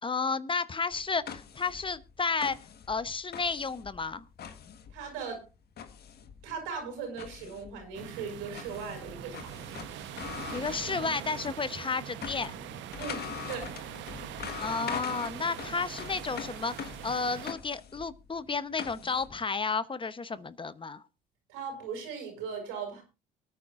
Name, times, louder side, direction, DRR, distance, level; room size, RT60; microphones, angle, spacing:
voice 1, 0.0-2.6 2.9-4.2 10.5-12.5 14.6-21.0, left 4 dB, 25° left, 14 dB, 0.9 m, -32 dB
sound 1, 0.9-11.6 11.9-19.3, left 8 dB, 55° left, 1.5 m, -43 dB
voice 2, 4.9-5.4 6.4-9.8 13.0-13.7 21.5-23.0, right 5 dB, 85° right, 4 dB, 6.1 m, -38 dB
sound 2, 7.9-17.5, right 11 dB, 70° right, 1.1 m, -42 dB
23.5 x 9.5 x 2.6 m, 0.28 s
supercardioid pair, 75°, 20 cm